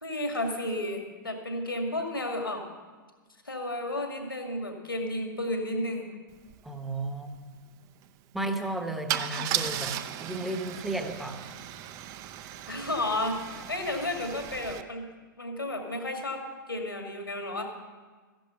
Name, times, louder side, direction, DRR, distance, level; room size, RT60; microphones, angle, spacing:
voice 1, 0.0-2.6 3.4-6.1 12.7-15.1 15.4-17.6, left 1 dB, 80° left, 3 dB, 2.1 m, -32 dB
Car / Engine starting / Idling, 6.5-6.6 6.8-7.1 9.1-14.8, right 11 dB, 30° right, 0.5 m, -36 dB
voice 2, 6.6-7.4 8.3-11.5, right 2 dB, ahead, 6 dB, 1.0 m, -34 dB
14.0 x 10.5 x 5.8 m, 1.4 s
figure-of-eight pair, 105°, 11 cm